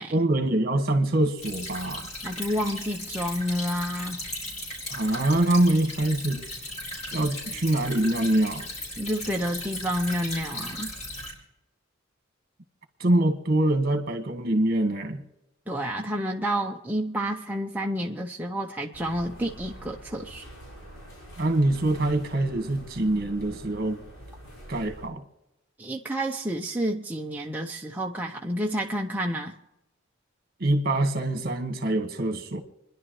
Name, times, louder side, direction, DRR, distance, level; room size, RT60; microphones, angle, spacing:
voice 1, 0.1-2.1 4.9-6.4 7.1-8.7 13.0-15.2 21.4-24.0 24.7-25.2 30.6-32.6, right 1 dB, 45° right, 1.7 m, -24 dB
Stream / Trickle dribble, 1.4-11.3, left 1 dB, 35° left, 4.4 m, -37 dB
voice 2, 2.2-4.2 9.0-10.9 15.7-20.5 25.8-29.5, equal, 10° right, 0.7 m, -29 dB
sound 1, 18.9-25.1, equal, 90° left, 5.3 m, -45 dB
28.0 x 11.0 x 3.2 m
head